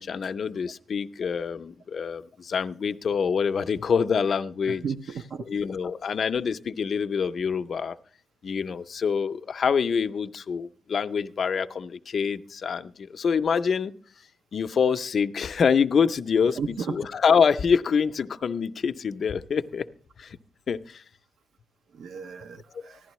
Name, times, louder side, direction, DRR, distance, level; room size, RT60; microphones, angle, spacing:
voice 1, 0.0-4.8 5.4-8.0 8.4-13.9 14.5-19.9 20.2-20.4 20.7-21.0 22.7-22.9, left 6 dB, 50° left, 0.5 m, -26 dB
voice 2, 4.8-5.4 16.6-16.9 21.9-23.0, right 6 dB, 85° right, 0.5 m, -33 dB
15.0 x 11.5 x 3.0 m
wide cardioid pair, 165°, 0 cm